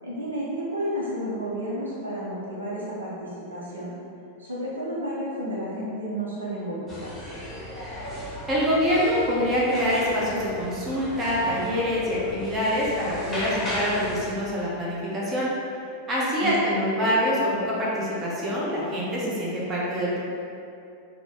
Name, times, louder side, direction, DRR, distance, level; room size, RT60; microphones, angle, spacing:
voice 1, 0.0-3.9 4.4-7.1 16.4-16.8, right 1 dB, 75° right, -6 dB, 0.7 m, -31 dB
sound 1, 6.9-14.3, left 1 dB, 10° left, 0.9 m, -36 dB
voice 2, 8.5-15.5 16.1-20.2, equal, 20° right, -6 dB, 0.8 m, -25 dB
4.1 x 2.1 x 2.9 m, 2.6 s
figure-of-eight pair, 90°, 0 cm